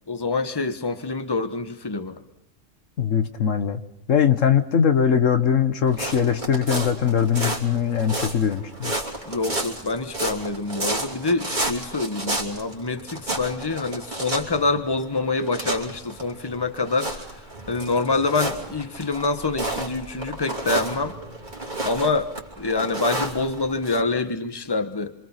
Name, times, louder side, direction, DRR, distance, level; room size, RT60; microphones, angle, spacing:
voice 1, 0.1-2.2 9.2-17.4 17.7-21.2 21.8-25.1, left 3 dB, 20° left, 9 dB, 1.4 m, -26 dB
voice 2, 3.0-3.8 4.1-8.9, left 8 dB, 75° left, 10 dB, 1.6 m, -21 dB
sound 1, 5.9-24.0, right 2 dB, 35° right, 3.3 m, -32 dB
26.5 x 26.5 x 5.8 m, 0.75 s
omnidirectional pair, 1.3 m